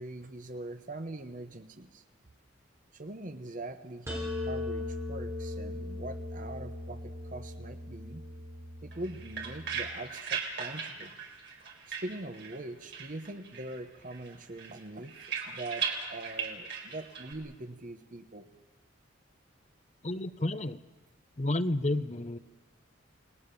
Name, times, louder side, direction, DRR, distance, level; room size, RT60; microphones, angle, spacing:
voice 1, 0.0-2.0 2.9-8.2 8.8-11.2 11.9-15.1 15.4-18.5, right 2 dB, 40° right, 9 dB, 1.0 m, -42 dB
sound 1, 4.1-9.9, left 2 dB, 15° right, 6.7 m, -39 dB
sound 2, 8.9-12.7 12.9-13.8 14.1-17.3, right 6 dB, 60° right, 4.1 m, -38 dB
voice 2, 20.0-20.8 21.4-22.4, left 1 dB, 35° left, 12 dB, 0.7 m, -30 dB
29.0 x 19.5 x 6.9 m, 1.3 s
head